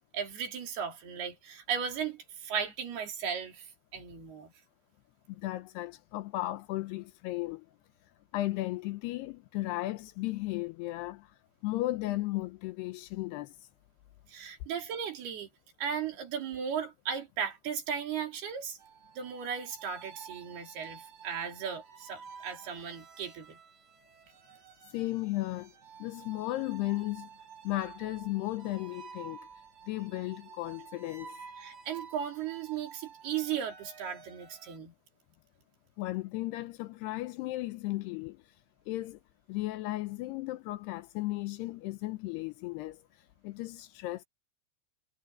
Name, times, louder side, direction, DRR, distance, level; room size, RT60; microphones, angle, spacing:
voice 1, 0.1-4.5 14.3-15.5 15.8-18.8 19.2-23.6 31.6-34.9, right 7 dB, 70° right, 5.0 m, -36 dB
voice 2, 5.3-7.7 8.3-11.3 11.6-13.5 24.9-25.7 26.0-27.3 27.6-29.5 29.9-31.4 36.0-38.4 38.9-39.2 39.5-43.0 43.4-44.3, left 18 dB, 80° left, 2.8 m, -35 dB
sound 1, 18.8-34.8, right 6 dB, 50° right, 2.7 m, -51 dB
omnidirectional pair, 4.8 m